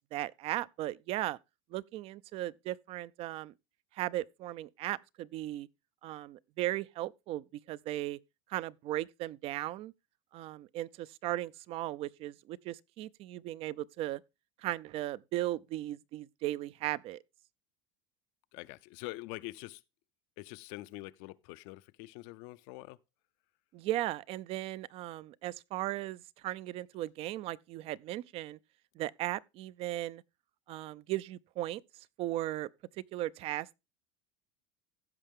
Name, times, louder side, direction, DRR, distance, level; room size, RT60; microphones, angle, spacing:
voice 1, 0.1-1.4 1.7-3.5 3.9-5.7 6.0-8.2 8.5-9.9 10.3-14.2 14.6-17.2 23.7-28.6 29.0-30.2 30.7-31.8 32.2-32.7 33.1-33.7, right 15 dB, 45° right, 0.4 m, -37 dB
voice 2, 18.5-19.8 20.4-23.0, left 20 dB, 65° left, 0.6 m, -45 dB
15.5 x 5.6 x 3.6 m
supercardioid pair, 125°, 13 cm